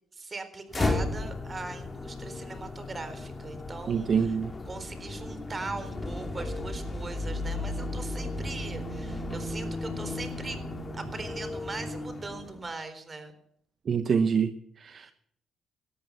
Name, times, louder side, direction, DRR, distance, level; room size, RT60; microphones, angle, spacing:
voice 1, 0.1-4.3 4.7-10.6 10.9-13.3 15.0-15.1, right 3 dB, 30° right, 10 dB, 4.0 m, -40 dB
sound 1, 0.7-12.7, left 2 dB, 30° left, 2.8 m, -35 dB
voice 2, 3.9-4.5 13.9-15.1, right 6 dB, 50° right, 11 dB, 1.0 m, -26 dB
18.5 x 13.0 x 5.7 m, 0.70 s
cardioid pair, 90°, 0 cm